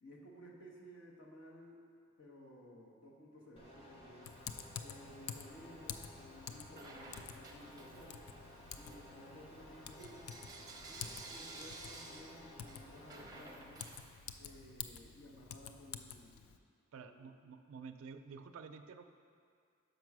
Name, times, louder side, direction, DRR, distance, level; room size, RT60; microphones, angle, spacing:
voice 1, 0.0-1.9 2.2-4.3 4.8-8.2 8.7-10.3 10.9-13.9 14.4-16.5 17.0-17.3, equal, 60° left, -2 dB, 1.1 m, -56 dB
sound 1, 3.6-13.6, equal, 30° left, 1.1 m, -56 dB
Typing, 4.2-16.6, left 8 dB, 80° left, 0.4 m, -50 dB
Bell / Coin (dropping), 6.7-8.3 8.7-14.6, right 3 dB, 20° right, 0.6 m, -53 dB
voice 2, 16.9-19.0, right 5 dB, 75° right, 6 dB, 0.4 m, -50 dB
6.0 x 5.3 x 6.0 m, 2.2 s
head